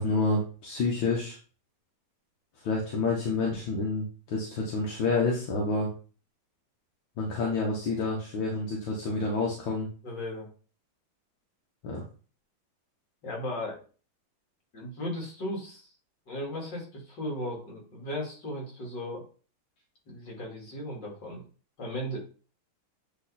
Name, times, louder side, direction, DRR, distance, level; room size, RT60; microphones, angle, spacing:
voice 1, 0.0-1.4 2.6-5.9 7.2-9.9 11.8-12.0, left 3 dB, 80° left, -2 dB, 2.0 m, -28 dB
voice 2, 10.0-10.5 13.2-13.8 14.7-15.9 16.3-19.2 20.1-21.4 21.8-22.2, left 1 dB, 65° left, -2 dB, 3.2 m, -36 dB
8.9 x 3.3 x 4.2 m, 0.38 s
omnidirectional pair, 2.1 m